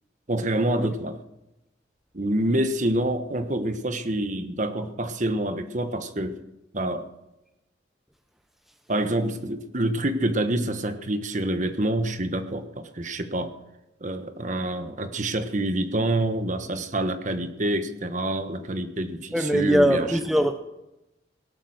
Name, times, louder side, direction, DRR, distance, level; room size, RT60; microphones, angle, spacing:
voice 1, 0.3-1.2 2.1-6.4 6.7-7.1 8.9-13.5 14.0-20.2, right 1 dB, 40° right, 8 dB, 1.3 m, -27 dB
voice 2, 19.3-20.6, equal, ahead, 7 dB, 0.7 m, -21 dB
18.0 x 11.5 x 6.5 m, 0.93 s
head